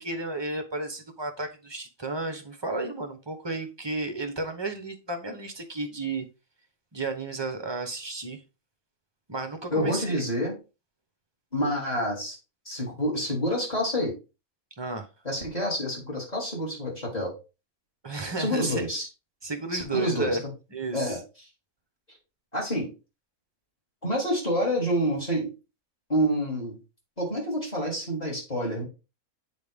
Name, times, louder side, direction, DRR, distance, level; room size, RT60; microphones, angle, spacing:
voice 1, 0.0-6.3 6.9-8.4 9.3-10.2 14.8-15.1 18.0-18.8 19.4-20.4 20.7-21.1, right 2 dB, 20° right, 0.8 m, -32 dB
voice 2, 9.7-10.5 11.5-12.4 12.6-14.1 15.2-17.3 18.4-19.1 19.7-20.3 20.9-21.2 22.5-22.9 24.0-25.5 26.1-26.8 27.2-28.8, equal, 25° left, 2.9 m, -27 dB
8.3 x 4.3 x 3.5 m
omnidirectional pair, 1.6 m